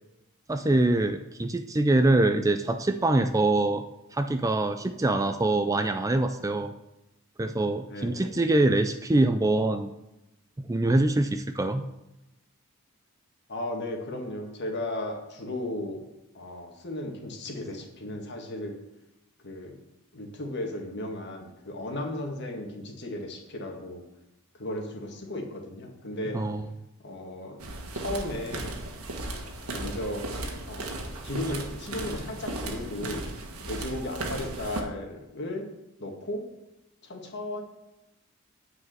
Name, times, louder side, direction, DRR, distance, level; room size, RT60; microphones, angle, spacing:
voice 1, 0.5-3.8 4.1-6.7 7.4-9.9 10.6-11.8 26.3-26.6, right 2 dB, 15° right, 8 dB, 0.4 m, -24 dB
voice 2, 7.9-8.3 13.5-16.0 16.3-18.8 19.4-19.7 20.1-24.0 24.5-26.4 27.0-27.6 27.9-28.7 29.7-30.3 30.7-30.9 31.2-33.3 33.6-35.7 36.0-36.4 37.0-37.6, left 1 dB, 50° left, 2 dB, 1.9 m, -35 dB
sound 1, 27.6-34.8, right 2 dB, 75° right, 1.6 m, -36 dB
9.5 x 4.9 x 7.7 m, 0.93 s
head